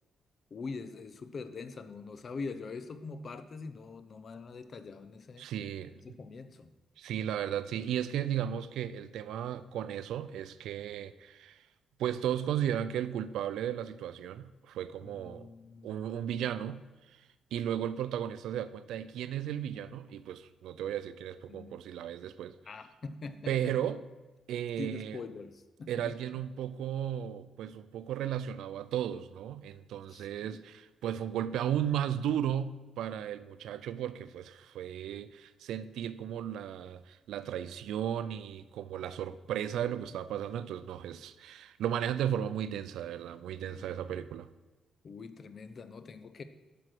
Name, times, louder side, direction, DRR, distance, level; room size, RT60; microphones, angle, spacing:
voice 1, 0.5-5.5 6.0-6.7 15.0-16.0 21.5-21.7 22.7-23.7 24.8-26.1 30.1-30.6 43.7-44.0 45.0-46.4, left 4 dB, 40° left, 11 dB, 0.6 m, -43 dB
voice 2, 5.4-6.0 7.0-11.6 12.0-15.5 15.8-16.8 17.5-22.5 23.5-24.0 24.5-25.2 25.9-44.5, right 10 dB, 90° right, 14 dB, 0.4 m, -35 dB
7.7 x 6.0 x 6.1 m, 1.1 s
cardioid pair, 120°, 0 cm